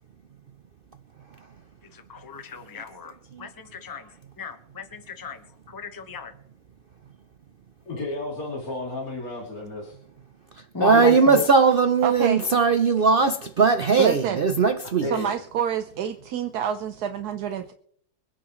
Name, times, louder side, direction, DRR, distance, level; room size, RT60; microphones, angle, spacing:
voice 1, 1.9-3.1 3.4-4.1 4.4-6.3 10.7-11.5, left 3 dB, 15° left, 6 dB, 1.1 m, -34 dB
voice 2, 7.9-10.0 14.8-15.3, left 2 dB, 65° left, -3 dB, 3.1 m, -32 dB
voice 3, 10.8-15.0, right 5 dB, 55° right, 8 dB, 0.6 m, -19 dB
voice 4, 12.0-12.6 14.0-14.4 15.0-17.7, right 9 dB, 80° right, 7 dB, 1.3 m, -28 dB
24.5 x 9.9 x 3.1 m, 0.65 s
omnidirectional pair, 1.7 m